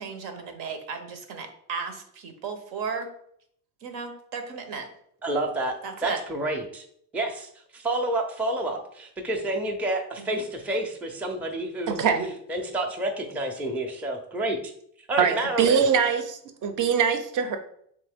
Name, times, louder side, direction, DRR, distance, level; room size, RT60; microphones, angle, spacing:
voice 1, 0.0-3.1 3.8-4.9 5.8-6.2 10.2-10.4, right 5 dB, 80° right, 6 dB, 0.9 m, -35 dB
voice 2, 5.2-5.7 6.0-6.8 7.1-12.0 12.5-14.7 15.1-15.8, right 1 dB, 5° right, 1 dB, 0.4 m, -29 dB
voice 3, 11.9-12.3 15.2-17.6, right 6 dB, 45° right, 7 dB, 0.6 m, -23 dB
3.5 x 3.1 x 3.5 m, 0.67 s
cardioid pair, 120°, 43 cm